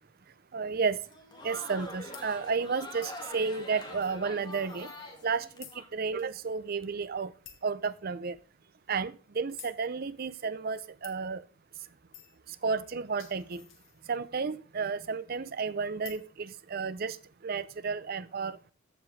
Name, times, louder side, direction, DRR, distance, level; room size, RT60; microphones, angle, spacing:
voice 1, 0.5-1.0 1.4-4.9 5.2-7.3 7.6-8.4 8.9-11.4 12.6-13.6 14.1-17.2 17.4-18.6, right 5 dB, 45° right, 0.5 m, -32 dB
Crowd, 1.0-5.9, left 1 dB, 20° left, 1.8 m, -44 dB
sound 1, 2.1-2.3 3.0-3.3 4.0-5.3 5.6-5.8 6.2-6.3 6.7-6.8 7.4-7.7 8.3-8.4 9.6-9.8 11.0-11.2 12.1-12.4 12.9-14.4 16.0-16.3, left 10 dB, 70° left, 1.6 m, -51 dB
14.5 x 5.0 x 3.2 m
head